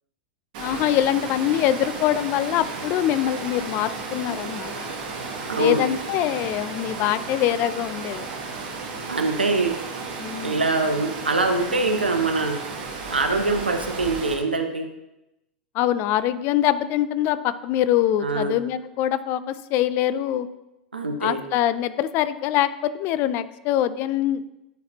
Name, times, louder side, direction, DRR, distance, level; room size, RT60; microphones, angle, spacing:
Water, 0.5-14.3, right 4 dB, 55° right, 1.6 m, -34 dB
voice 1, 0.6-4.7 5.5-8.3 10.2-10.6 15.7-20.5 21.2-24.5, left 12 dB, 45° left, 14 dB, 0.4 m, -24 dB
voice 2, 5.5-5.9 9.1-9.8 10.4-12.6 13.1-14.9 18.2-18.6 20.9-21.4, right 3 dB, 90° right, 5 dB, 0.8 m, -23 dB
10.5 x 4.1 x 2.9 m, 0.94 s
figure-of-eight pair, 95°, 5 cm